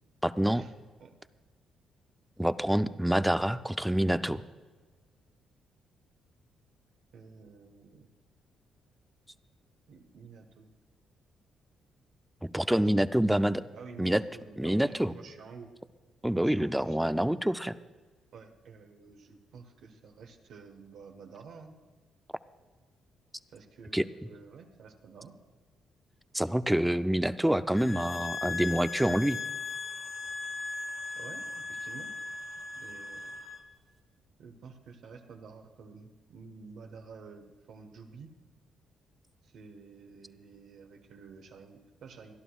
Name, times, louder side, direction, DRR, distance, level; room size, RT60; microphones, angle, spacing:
voice 1, 0.2-0.7 2.4-4.4 12.4-13.6 14.0-14.2 14.6-15.1 16.2-17.7 23.9-24.0 26.3-29.4, right 1 dB, 5° right, 12 dB, 0.5 m, -27 dB
voice 2, 7.1-8.1 9.9-10.7 12.8-13.4 13.7-15.7 16.4-17.1 18.3-21.7 23.5-25.4 31.1-32.1 32.8-33.4 34.4-38.3 39.4-42.3, right 5 dB, 70° right, 4 dB, 1.3 m, -50 dB
sound 1, 27.8-33.6, left 4 dB, 40° left, 2.5 m, -38 dB
26.5 x 11.0 x 2.4 m, 1.4 s
cardioid pair, 90°, 0 cm